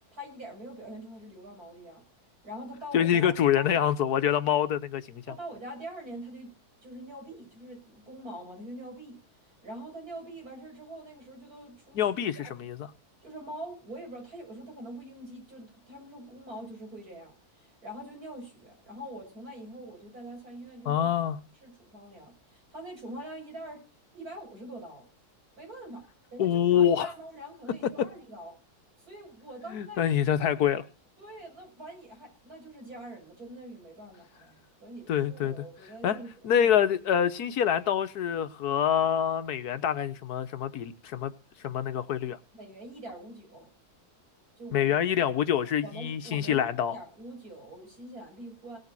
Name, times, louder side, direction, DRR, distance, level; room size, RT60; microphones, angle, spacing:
voice 1, 0.1-2.0 2.4-3.8 5.2-6.5 6.8-12.4 13.2-21.1 21.6-23.8 24.1-25.1 25.6-28.5 29.0-30.5 31.2-36.7 42.5-43.7 44.6-45.0 45.8-48.8, right 1 dB, 70° right, 6.9 m, -44 dB
voice 2, 2.9-5.2 11.9-12.8 20.8-21.4 26.4-27.1 29.7-30.8 35.1-35.5 36.0-36.2 36.4-41.3 41.6-42.4 44.7-47.0, left 9 dB, 85° left, 1.5 m, -26 dB
18.0 x 6.8 x 7.5 m
omnidirectional pair, 1.6 m